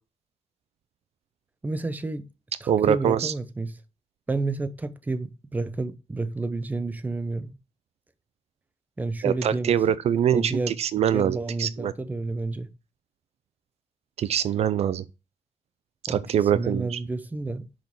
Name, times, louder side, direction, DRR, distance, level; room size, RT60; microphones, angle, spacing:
voice 1, 1.6-2.2 2.6-3.7 4.3-7.6 9.0-9.8 10.3-10.7 11.1-12.7 16.1-16.2 16.5-17.7, right 3 dB, 15° right, 0.8 m, -30 dB
voice 2, 2.7-3.3 9.2-11.9 14.2-15.0 16.1-17.0, right 9 dB, 65° right, 0.4 m, -24 dB
6.4 x 5.2 x 6.0 m
wide cardioid pair, 155°, 12 cm